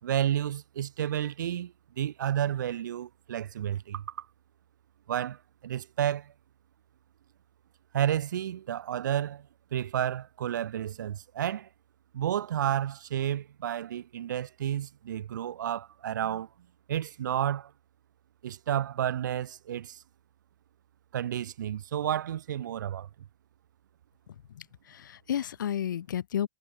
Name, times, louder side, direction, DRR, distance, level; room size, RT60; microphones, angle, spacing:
voice 1, 0.0-4.3 5.1-6.3 7.9-11.7 12.1-16.5 16.9-17.7 18.4-20.0 21.1-23.1, right 10 dB, 70° right, 6.8 m, -31 dB
voice 2, 24.3-26.5, left 10 dB, 80° left, 6.5 m, -33 dB
supercardioid pair, 165°, 10 cm